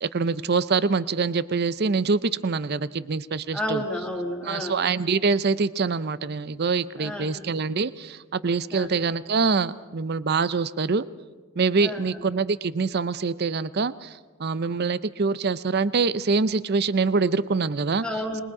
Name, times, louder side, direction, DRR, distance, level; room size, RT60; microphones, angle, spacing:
voice 1, 0.0-3.8 4.5-11.1 11.6-18.0, right 4 dB, 50° right, 16 dB, 0.6 m, -25 dB
voice 2, 3.5-4.8 7.0-7.4 8.7-9.0 11.8-12.2 18.0-18.4, left 1 dB, 5° left, 0 dB, 2.5 m, -31 dB
27.0 x 21.5 x 4.9 m, 1.3 s
head